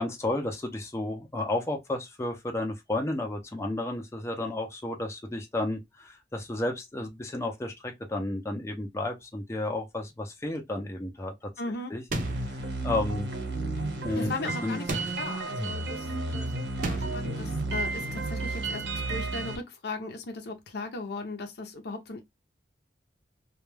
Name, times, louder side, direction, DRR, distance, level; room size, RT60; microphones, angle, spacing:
voice 1, 0.0-11.5 11.9-12.0 12.5-12.6 12.8-13.3 14.0-14.3 14.6-14.8, left 2 dB, 15° left, 0.5 m, -32 dB
voice 2, 11.6-11.9 14.1-22.2, left 3 dB, 65° left, 0.6 m, -38 dB
sound 1, 12.1-12.6 14.9-15.4 16.8-17.3, right 2 dB, 50° right, 0.6 m, -33 dB
sound 2, 12.2-19.6, right 2 dB, 85° right, 1.1 m, -32 dB
2.2 x 2.1 x 3.1 m
head